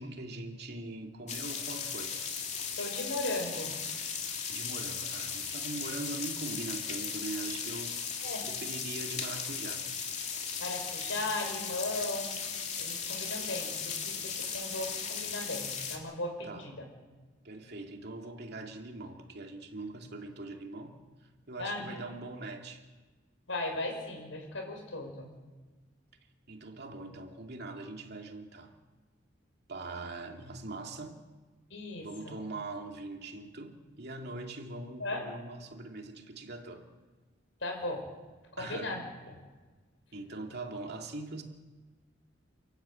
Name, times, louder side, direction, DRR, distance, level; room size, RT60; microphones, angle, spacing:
voice 1, 0.0-2.2 4.5-9.9 16.4-16.7 17.4-22.8 26.5-28.8 29.7-31.2 32.0-36.9 38.6-39.0 40.1-41.4, right 2 dB, 60° right, 3 dB, 2.5 m, -42 dB
sound 1, 1.3-16.0, left 6 dB, 40° left, 2.7 m, -37 dB
voice 2, 2.8-3.7 8.2-8.4 10.6-12.5 12.8-16.9 21.6-22.0 23.5-25.3 31.7-32.4 35.0-35.2 37.6-38.1 38.6-39.0 39.3-39.4, left 2 dB, 90° left, 3 dB, 5.6 m, -37 dB
29.0 x 12.0 x 8.6 m, 1.3 s
head